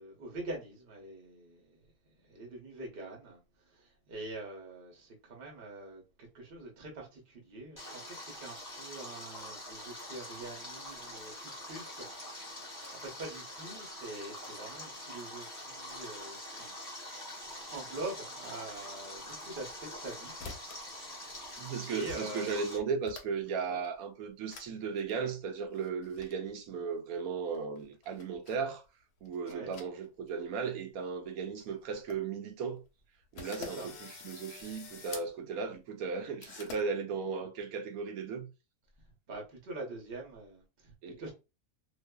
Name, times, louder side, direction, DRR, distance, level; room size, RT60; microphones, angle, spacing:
voice 1, 0.0-1.7 2.3-3.4 4.1-12.7 13.0-16.7 17.7-20.3 21.0-21.6 21.9-22.5 23.7-23.8 29.5-29.7 33.6-33.9 39.3-41.3, right 2 dB, 45° right, 0.9 m, -44 dB
Stream, 7.8-22.8, left 1 dB, 15° left, 0.7 m, -45 dB
sound 1, 19.5-20.1 20.4-20.9 21.2-21.7 22.1-22.2 22.5-23.5 23.8-24.0 24.5-24.7 25.0-25.1 25.7-26.3 27.5-28.6 29.2-30.3 30.6-30.7 31.2-31.3 31.6-31.7 31.9-32.2 32.7-32.8 33.4-35.3 36.4-36.8, left 5 dB, 85° left, 1.1 m, -47 dB
voice 2, 21.6-28.8 29.2-32.8 33.3-38.5 41.0-41.3, right 5 dB, 75° right, 1.0 m, -36 dB
2.5 x 2.4 x 2.2 m
omnidirectional pair, 1.6 m